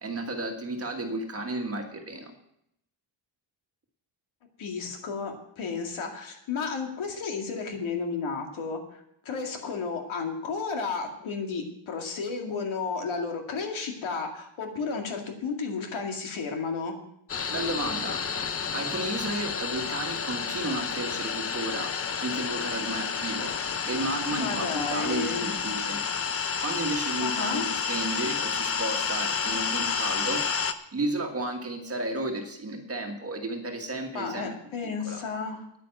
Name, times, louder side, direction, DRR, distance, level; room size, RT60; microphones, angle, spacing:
voice 1, 0.0-2.3 17.5-18.2 18.7-21.9 22.2-23.6 23.8-26.0 26.6-30.4 30.9-34.5 34.8-35.2, right 2 dB, 30° right, 3 dB, 1.6 m, -33 dB
voice 2, 4.6-17.0 24.3-25.6 27.2-27.7 34.1-35.7, left 4 dB, 70° left, 3 dB, 2.3 m, -32 dB
sound 1, 17.3-30.7, left 6 dB, 30° left, 0.6 m, -30 dB
10.0 x 9.4 x 7.6 m, 0.77 s
wide cardioid pair, 180°, 50 cm